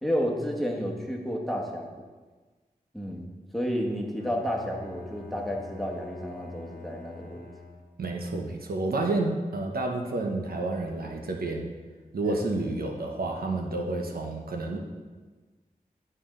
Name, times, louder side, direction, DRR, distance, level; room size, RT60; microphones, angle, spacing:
voice 1, 0.0-1.9 2.9-3.2 3.5-7.5 12.3-12.4, equal, ahead, 0 dB, 1.3 m, -31 dB
Bowed string instrument, 4.2-8.1, left 3 dB, 70° left, 1.1 m, -46 dB
voice 2, 8.0-11.7 12.1-14.8, right 2 dB, 80° right, 1 dB, 0.9 m, -30 dB
11.0 x 4.4 x 3.8 m, 1.3 s
wide cardioid pair, 55°, 15 cm